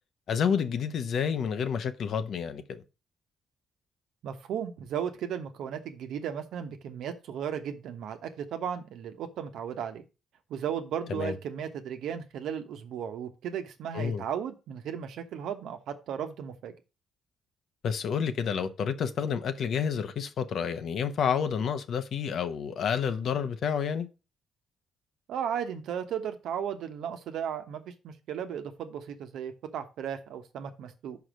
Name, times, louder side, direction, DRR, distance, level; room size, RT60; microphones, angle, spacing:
voice 1, 0.3-2.8 11.1-11.3 13.9-14.2 17.8-24.1, left 7 dB, 65° left, 0.9 m, -29 dB
voice 2, 4.2-10.0 10.5-16.7 25.3-31.2, right 8 dB, 80° right, 1.0 m, -35 dB
5.3 x 4.9 x 6.2 m
cardioid pair, 90°, 0 cm